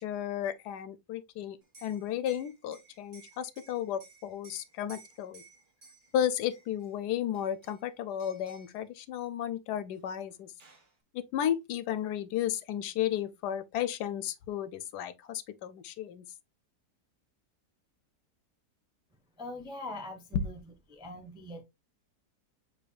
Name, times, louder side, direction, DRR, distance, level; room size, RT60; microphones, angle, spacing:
voice 1, 0.0-5.4 6.1-10.5 11.1-16.3 20.3-20.5, left 10 dB, 75° left, 1.1 m, -33 dB
Liquid, 1.6-6.9 7.3-7.9 8.2-8.8 9.9-10.0 10.3-10.9, right 3 dB, 35° right, 1.2 m, -57 dB
voice 2, 19.4-20.6 20.9-21.6, left 1 dB, 5° right, 0.4 m, -42 dB
6.8 x 3.2 x 2.2 m
omnidirectional pair, 1.8 m